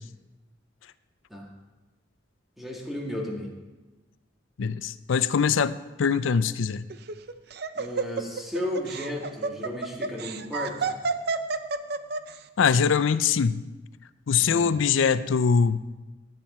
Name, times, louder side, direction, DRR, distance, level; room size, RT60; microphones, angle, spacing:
voice 1, 2.6-3.5 7.7-10.9 14.4-14.7, left 1 dB, ahead, -2 dB, 1.9 m, -34 dB
voice 2, 4.6-6.9 12.6-13.6 14.3-15.8, left 6 dB, 80° left, 14 dB, 0.5 m, -23 dB
Laughter, 6.9-12.4, right 4 dB, 55° right, 0.6 m, -30 dB
16.0 x 9.1 x 4.3 m, 1.1 s
head